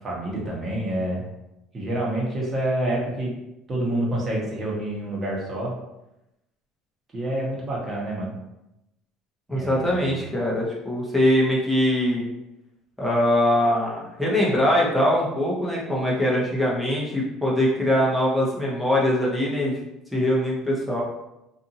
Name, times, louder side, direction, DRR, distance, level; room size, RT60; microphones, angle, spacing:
voice 1, 0.0-1.2 1.7-3.3 3.7-5.7 7.1-8.4 9.5-10.1, right 1 dB, 30° right, -4 dB, 1.1 m, -27 dB
voice 2, 9.5-12.2 13.0-19.7 20.1-21.0, left 1 dB, ahead, -5 dB, 0.9 m, -22 dB
2.7 x 2.6 x 2.6 m, 0.90 s
cardioid pair, 115°, 0 cm